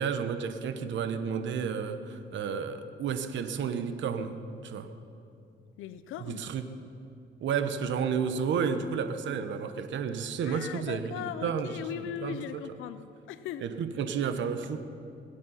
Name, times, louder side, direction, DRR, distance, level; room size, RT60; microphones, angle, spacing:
voice 1, 0.0-4.3 4.6-4.9 6.3-6.6 7.4-11.7 12.2-12.6 13.6-14.8, right 6 dB, 70° right, 9 dB, 0.9 m, -31 dB
voice 2, 5.8-6.5 10.4-13.0 13.3-13.7, left 9 dB, 85° left, 13 dB, 0.6 m, -38 dB
22.0 x 8.4 x 5.6 m, 2.5 s
cardioid pair, 90°, 20 cm